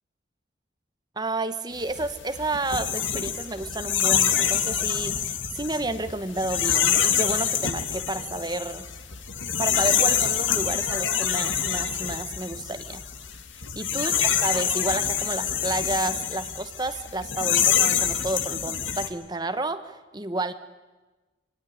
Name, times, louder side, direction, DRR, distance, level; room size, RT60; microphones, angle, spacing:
voice 1, 1.2-8.9 9.6-13.0 13.7-20.5, right 2 dB, 20° right, 10 dB, 1.1 m, -31 dB
sound 1, 1.8-19.1, left 8 dB, 75° left, 1.9 m, -26 dB
25.5 x 18.5 x 10.0 m, 1.2 s
head